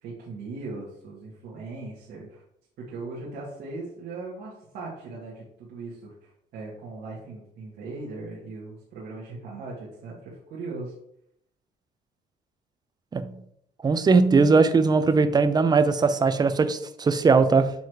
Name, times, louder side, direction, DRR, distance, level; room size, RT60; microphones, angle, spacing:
voice 1, 0.0-2.4 2.8-10.9, right 3 dB, 75° right, 1.6 m, -39 dB
voice 2, 13.8-17.7, right 4 dB, 25° right, 0.5 m, -20 dB
7.1 x 3.1 x 4.6 m
cardioid pair, 110°, 17 cm